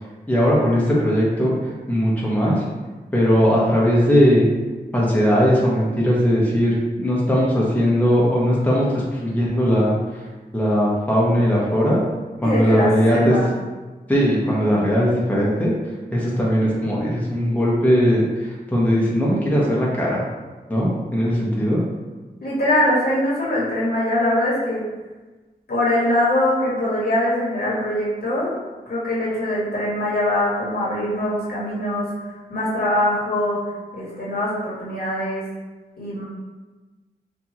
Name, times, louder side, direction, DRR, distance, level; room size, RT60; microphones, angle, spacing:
voice 1, 0.3-2.6 3.1-4.5 4.9-9.9 10.5-12.0 12.4-13.4 14.1-15.7 16.1-20.2 20.7-21.8, equal, 10° left, -6 dB, 1.0 m, -19 dB
voice 2, 12.4-13.5 22.4-24.8 25.7-28.5 28.9-32.1 32.5-33.6 33.9-35.4 36.0-36.2, left 1 dB, 65° left, -7 dB, 1.5 m, -22 dB
4.4 x 2.7 x 2.9 m, 1.2 s
wide cardioid pair, 65°, 17 cm